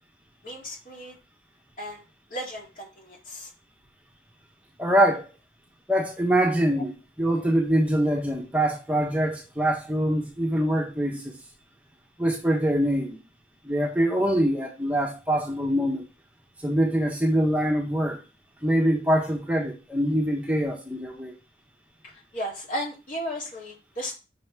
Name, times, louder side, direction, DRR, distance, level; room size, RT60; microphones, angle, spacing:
voice 1, 0.4-1.2 1.8-2.0 2.3-3.5 22.0-24.2, equal, 50° left, 2.3 m, -35 dB
voice 2, 4.8-5.2 5.9-11.4 12.2-13.2 13.6-16.1 16.6-18.2 18.6-21.3, right 1 dB, 10° right, 0.9 m, -24 dB
5.7 x 3.9 x 4.5 m
head